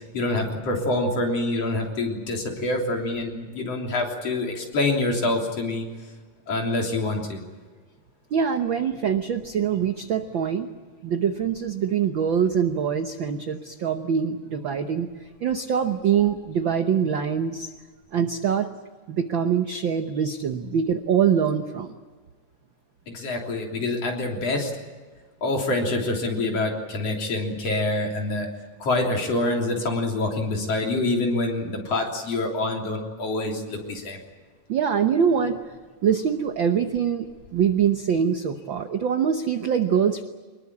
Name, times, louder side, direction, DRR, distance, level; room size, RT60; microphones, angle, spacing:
voice 1, 0.1-5.9 6.5-7.4 23.1-24.7 25.4-28.5 28.8-34.2, left 2 dB, 55° left, 1 dB, 4.3 m, -26 dB
voice 2, 8.3-10.7 11.0-15.1 15.4-17.7 18.1-18.7 19.1-22.0 34.7-35.6 36.0-40.2, right 7 dB, 65° right, 7 dB, 1.2 m, -24 dB
24.5 x 21.0 x 8.5 m, 1.4 s
omnidirectional pair, 3.5 m